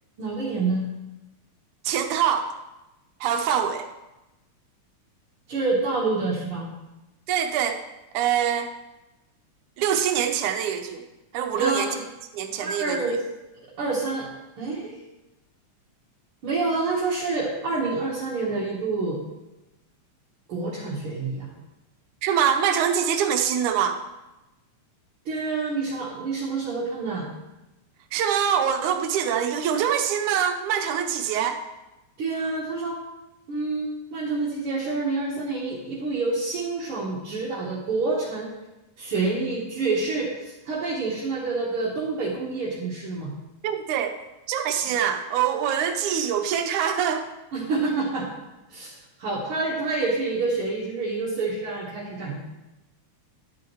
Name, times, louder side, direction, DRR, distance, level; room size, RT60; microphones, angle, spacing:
voice 1, 0.2-0.9 5.5-6.7 11.6-12.0 12.6-13.2 13.8-14.3 14.6-15.0 16.4-19.2 20.5-21.5 25.3-27.3 32.2-33.0 33.5-38.5 39.0-43.3 47.5-48.3 48.7-48.9 49.2-52.4, right 3 dB, 55° right, -6 dB, 1.9 m, -27 dB
voice 2, 1.8-2.5 3.2-3.9 7.3-7.8 8.1-8.7 9.8-11.0 11.3-12.0 12.3-13.2 22.2-24.0 28.1-31.6 43.6-44.2 44.5-47.3, right 8 dB, 85° right, 6 dB, 2.2 m, -24 dB
10.5 x 8.4 x 3.1 m, 1.0 s
omnidirectional pair, 3.4 m